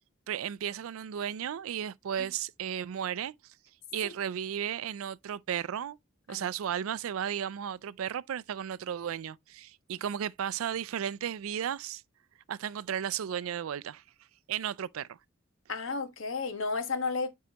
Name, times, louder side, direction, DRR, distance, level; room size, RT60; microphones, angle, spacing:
voice 1, 0.3-3.3 3.9-6.0 6.3-12.0 12.5-14.0 14.5-15.2, right 9 dB, 80° right, 0.4 m, -34 dB
voice 2, 15.7-17.3, left 4 dB, 65° left, 1.3 m, -33 dB
9.3 x 4.6 x 2.9 m
head